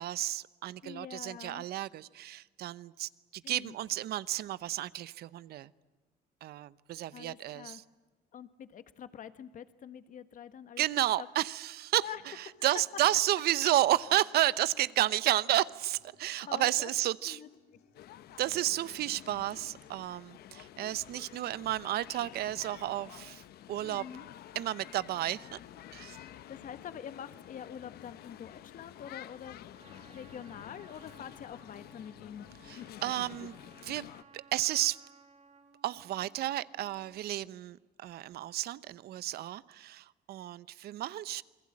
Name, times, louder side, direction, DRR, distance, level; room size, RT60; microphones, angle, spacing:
voice 1, 0.0-5.7 6.4-7.8 10.8-12.0 12.4-17.4 18.4-23.4 23.7-24.0 24.5-25.6 25.9-26.2 32.6-33.5 33.8-34.1 34.3-35.0 35.8-41.4, right 14 dB, 70° right, 18 dB, 0.9 m, -32 dB
voice 2, 0.8-1.7 3.4-3.7 7.1-7.8 8.3-11.3 12.0-12.2 16.4-16.9 17.2-17.5 23.8-24.3 26.5-29.6 30.1-32.5, left 8 dB, 50° left, 12 dB, 1.6 m, -45 dB
Acoustic guitar, 12.0-20.0, left 6 dB, 85° left, 3.6 m, -65 dB
sound 1, 17.9-34.2, left 12 dB, 70° left, 1.0 m, -50 dB
Trumpet, 29.7-37.3, right 5 dB, 45° right, 3.9 m, -60 dB
28.0 x 22.0 x 8.7 m, 1.2 s
cardioid pair, 110°, 17 cm